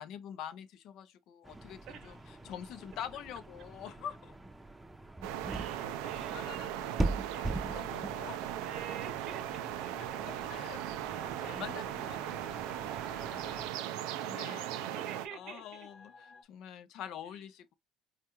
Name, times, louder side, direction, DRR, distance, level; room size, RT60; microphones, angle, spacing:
voice 1, 0.0-4.3 5.3-8.7 10.0-12.9 14.2-14.9 15.3-17.7, left 9 dB, 65° left, 0.5 m, -46 dB
sound 1, 1.4-13.7, right 2 dB, 10° right, 0.6 m, -42 dB
voice 2, 1.9-2.5 5.5-6.6 8.6-10.2 11.4-12.5 13.3-15.9 17.3-17.4, right 7 dB, 65° right, 0.8 m, -50 dB
sound 2, 5.2-15.3, right 12 dB, 85° right, 0.4 m, -38 dB
sound 3, 9.6-16.4, left 4 dB, 45° left, 0.9 m, -57 dB
4.4 x 2.3 x 2.9 m
supercardioid pair, 105°, 0 cm